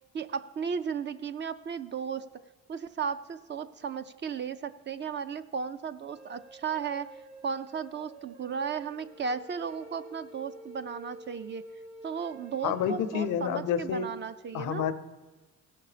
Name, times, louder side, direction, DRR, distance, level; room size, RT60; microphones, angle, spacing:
voice 1, 0.1-2.2 2.7-7.1 7.4-11.6 12.0-14.8, right 6 dB, 40° right, 12 dB, 0.4 m, -35 dB
ebow-mando-alone, 6.1-13.5, right 2 dB, 65° right, 3.9 m, -49 dB
voice 2, 12.6-14.1 14.5-14.9, left 8 dB, 85° left, 12 dB, 0.7 m, -29 dB
16.5 x 5.9 x 4.9 m, 1.3 s
cardioid pair, 90°, 30 cm